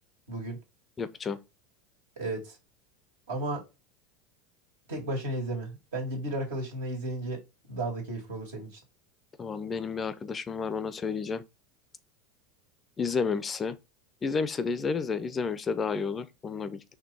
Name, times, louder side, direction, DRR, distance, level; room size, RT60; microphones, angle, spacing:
voice 1, 1.0-1.4 9.4-11.4 13.0-13.8 14.2-16.9, left 5 dB, 25° left, 0.5 m, -31 dB
voice 2, 2.2-2.6 3.3-3.6 4.9-7.4 7.7-8.7, right 1 dB, 80° right, 1.8 m, -33 dB
4.3 x 2.7 x 4.1 m
hypercardioid pair, 95°, 0 cm